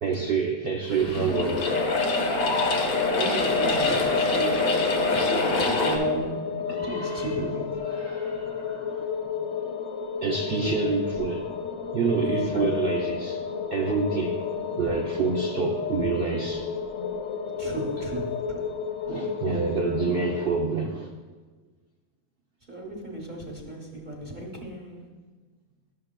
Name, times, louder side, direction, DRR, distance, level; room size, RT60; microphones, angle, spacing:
voice 1, 0.0-1.8 3.9-4.0 6.7-9.1 10.2-11.5 11.9-13.4 13.7-14.5 14.8-16.7 17.6-17.7 19.1-21.1, right 5 dB, 75° right, 1 dB, 0.5 m, -28 dB
sound 1, 0.8-6.0, left 3 dB, 80° left, 1.4 m, -25 dB
sound 2, 1.3-20.6, left 5 dB, 65° left, 1.0 m, -31 dB
voice 2, 3.1-7.6 10.6-10.8 12.2-13.0 17.6-18.7 22.7-25.1, right 2 dB, 35° right, 0 dB, 0.9 m, -35 dB
11.0 x 6.6 x 2.2 m, 1.4 s
omnidirectional pair, 1.6 m